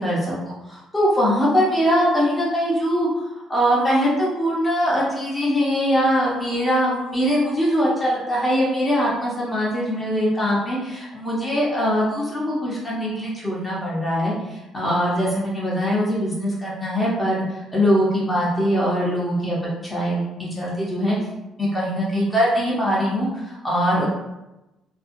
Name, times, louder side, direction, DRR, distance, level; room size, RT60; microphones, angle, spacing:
voice 1, 0.0-3.1 3.5-19.6 19.8-21.2 21.6-24.1, equal, 15° left, -6 dB, 0.8 m, -22 dB
2.5 x 2.3 x 2.6 m, 0.98 s
cardioid pair, 105°, 0 cm